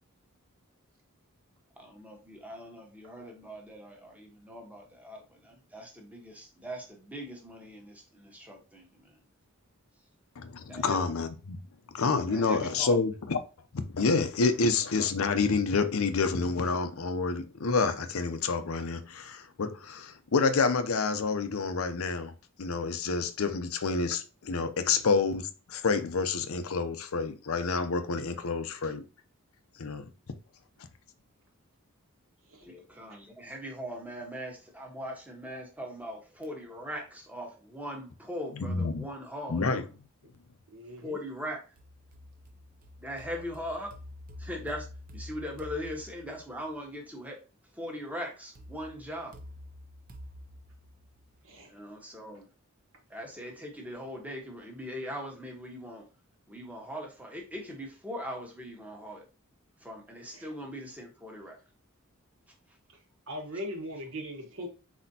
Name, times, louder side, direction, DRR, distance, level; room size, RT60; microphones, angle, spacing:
voice 1, 1.8-9.2 10.7-11.0 12.3-13.0 32.6-39.9 41.0-41.7 43.0-43.9 44.4-44.9 45.1-47.4 47.7-49.3 51.7-52.5 53.1-56.1 56.5-59.3 59.8-61.6 62.7-62.8, equal, 5° right, 1.1 m, -40 dB
voice 2, 10.4-11.6 11.9-13.4 13.7-22.3 22.6-29.0 29.8-30.1 38.6-39.0 39.5-39.8, left 4 dB, 70° left, 0.6 m, -28 dB
voice 3, 40.7-41.2 51.4-51.7 63.3-64.7, equal, 65° right, 1.4 m, -39 dB
sound 1, 41.8-46.7 48.5-51.6, left 1 dB, 40° right, 0.7 m, -48 dB
4.2 x 4.2 x 2.8 m
head